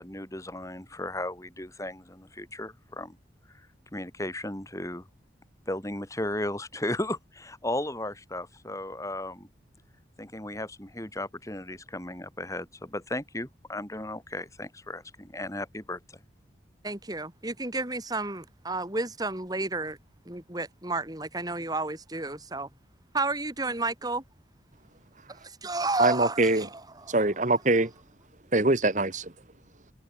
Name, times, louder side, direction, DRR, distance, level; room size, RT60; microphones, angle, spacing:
voice 1, 0.0-3.2 3.9-5.1 5.7-9.5 10.2-16.0, left 1 dB, 15° left, 4.6 m, -35 dB
voice 2, 16.8-20.0 20.3-22.7 23.1-24.2 25.3-27.2, right 2 dB, 20° right, 2.5 m, -32 dB
voice 3, 26.0-26.7 27.1-27.9 28.5-29.3, right 2 dB, 45° right, 1.8 m, -23 dB
head